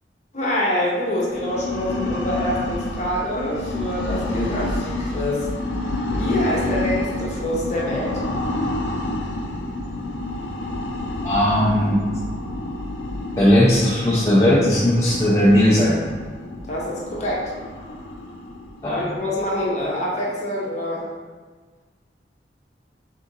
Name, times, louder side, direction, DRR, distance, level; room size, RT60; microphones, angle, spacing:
voice 1, 0.3-5.5 6.1-8.5 16.7-17.5 19.0-21.1, left 1 dB, 40° left, -4 dB, 0.8 m, -26 dB
sound 1, 1.1-19.9, left 2 dB, 85° left, 0.5 m, -29 dB
voice 2, 11.2-12.0 13.4-16.0 18.8-19.0, left 1 dB, 15° left, -8 dB, 0.5 m, -17 dB
3.6 x 2.5 x 4.0 m, 1.4 s
head